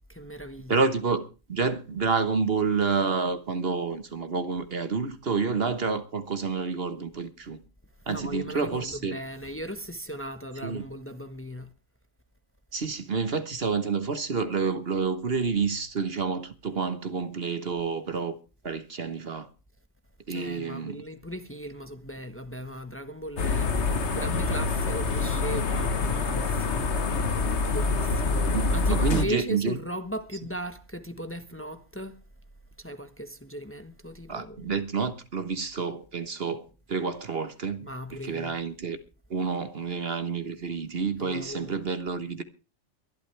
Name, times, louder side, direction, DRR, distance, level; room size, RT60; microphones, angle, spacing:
voice 1, 0.1-0.8 8.1-11.7 20.3-27.2 27.7-32.2 32.8-34.8 37.8-38.5 41.2-41.7, equal, 10° left, 1.2 m, -37 dB
voice 2, 0.7-1.2 1.5-7.6 8.1-9.2 10.6-10.8 12.7-18.4 18.6-19.5 20.3-21.0 28.5-29.8 34.3-37.9 38.2-39.0 39.3-42.4, right 5 dB, 55° right, 1.5 m, -29 dB
sound 1, 23.4-29.3, left 3 dB, 65° left, 1.6 m, -26 dB
23.0 x 12.0 x 3.4 m
omnidirectional pair, 1.2 m